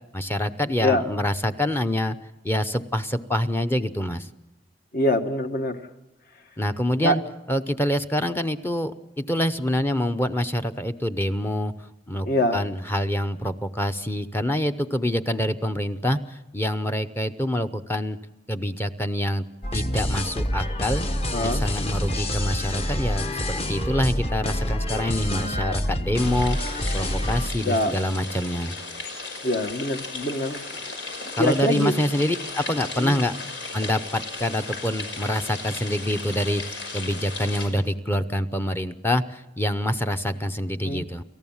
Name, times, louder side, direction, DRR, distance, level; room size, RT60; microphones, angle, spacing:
voice 1, 0.1-2.2 2.4-4.3 6.6-7.2 7.5-12.3 12.5-18.2 18.5-19.4 19.7-21.0 21.4-28.8 31.4-33.3 33.7-41.2, left 1 dB, 10° left, 8 dB, 0.7 m, -26 dB
voice 2, 4.9-5.8 7.0-7.1 12.2-12.6 21.3-21.6 27.6-27.9 29.4-30.7 31.4-31.9 33.0-33.2 40.8-41.0, left 1 dB, 50° left, 6 dB, 1.5 m, -24 dB
sound 1, 19.6-27.5, left 1 dB, 35° left, 1.3 m, -27 dB
sound 2, 26.1-37.7, left 3 dB, 85° left, 5.7 m, -35 dB
29.0 x 14.5 x 7.3 m, 1.0 s
head